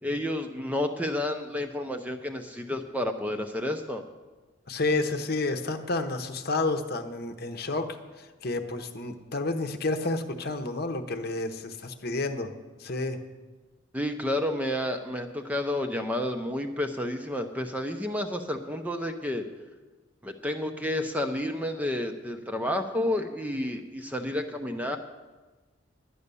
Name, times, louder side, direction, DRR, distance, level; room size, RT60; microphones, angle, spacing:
voice 1, 0.0-4.0 13.9-19.4 20.2-25.0, left 1 dB, 5° right, 5 dB, 0.6 m, -30 dB
voice 2, 4.7-12.5 12.8-13.2, left 2 dB, 50° left, 6 dB, 0.9 m, -30 dB
11.0 x 9.7 x 6.8 m, 1.3 s
head